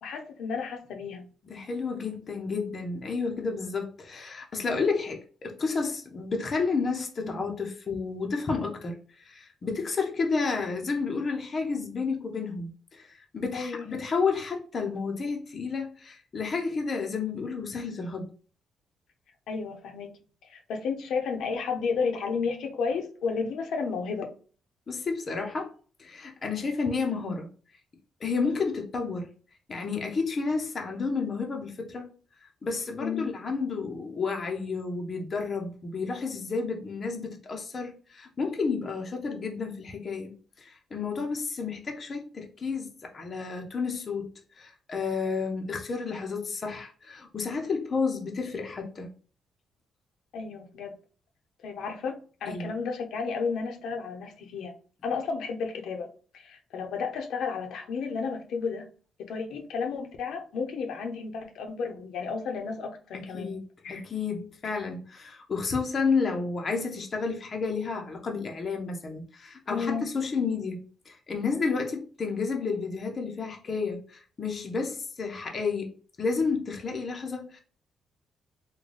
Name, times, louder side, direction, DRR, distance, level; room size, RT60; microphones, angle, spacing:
voice 1, 0.0-1.2 7.2-7.4 13.5-13.8 19.5-20.1 20.5-24.3 33.0-33.3 50.3-50.9 51.6-54.7 55.0-56.1 56.3-58.8 59.2-63.5 63.8-64.0 69.7-70.0, left 5 dB, 80° left, 0.7 m, -32 dB
voice 2, 1.4-18.3 24.9-25.7 26.0-27.5 28.2-29.3 29.7-32.1 32.4-49.1 52.5-52.7 63.1-63.6 63.9-77.6, left 4 dB, 35° left, 0.6 m, -31 dB
3.8 x 2.2 x 3.2 m
cardioid pair, 160°, 0 cm